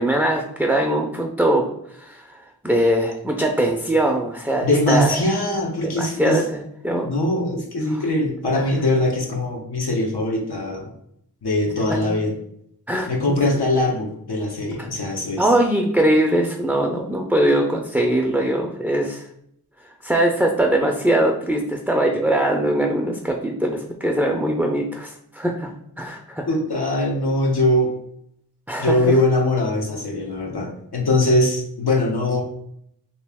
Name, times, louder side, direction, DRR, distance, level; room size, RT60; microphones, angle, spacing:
voice 1, 0.0-1.7 1.9-2.4 2.6-5.2 5.8-7.2 8.6-8.7 12.9-13.4 14.8-14.9 15.4-19.3 20.0-25.7 26.0-26.4 28.7-29.0, right 1 dB, 5° right, 1 dB, 0.4 m, -21 dB
voice 2, 4.6-6.4 7.0-10.9 11.4-12.3 13.1-15.5 26.5-27.9 28.8-32.4, left 1 dB, 90° left, 0 dB, 0.8 m, -21 dB
3.0 x 2.8 x 3.4 m, 0.73 s
wide cardioid pair, 45°, 38 cm